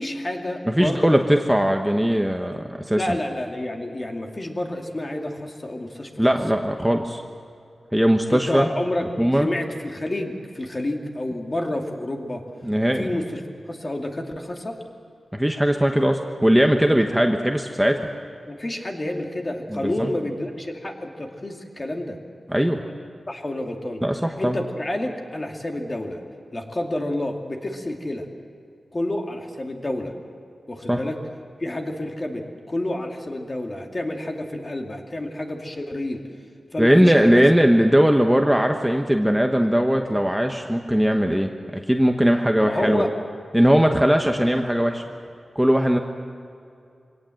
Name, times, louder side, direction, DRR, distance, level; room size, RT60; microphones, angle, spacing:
voice 1, 0.0-1.2 3.0-6.2 8.3-9.1 9.4-12.4 12.9-13.4 13.7-14.8 18.5-22.2 23.3-24.0 24.4-26.2 26.5-28.3 28.9-30.1 30.7-31.2 31.6-36.2 36.7-37.4 42.6-43.1, left 1 dB, 30° left, 2 dB, 2.4 m, -29 dB
voice 2, 0.7-3.0 6.2-7.2 7.9-8.7 9.2-9.5 12.6-13.1 15.3-18.1 19.7-20.1 22.5-22.8 24.0-24.6 30.9-31.0 36.8-43.0 43.5-45.0 45.5-46.0, equal, 5° right, 3 dB, 1.1 m, -19 dB
24.0 x 18.0 x 7.8 m, 2.4 s
wide cardioid pair, 85°, 0 cm